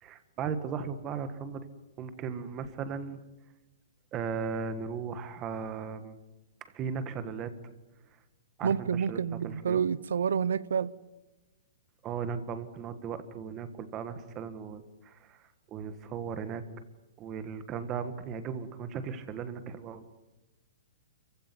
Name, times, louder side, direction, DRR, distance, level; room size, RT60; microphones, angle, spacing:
voice 1, 0.0-1.7 2.0-3.2 4.1-6.1 6.7-7.5 8.6-9.2 9.4-9.8 12.0-16.6 17.2-20.0, right 6 dB, 15° right, 1.5 m, -37 dB
voice 2, 8.6-10.9, right 7 dB, 90° right, 0.9 m, -28 dB
29.0 x 15.5 x 9.8 m
hypercardioid pair, 175°, 0 cm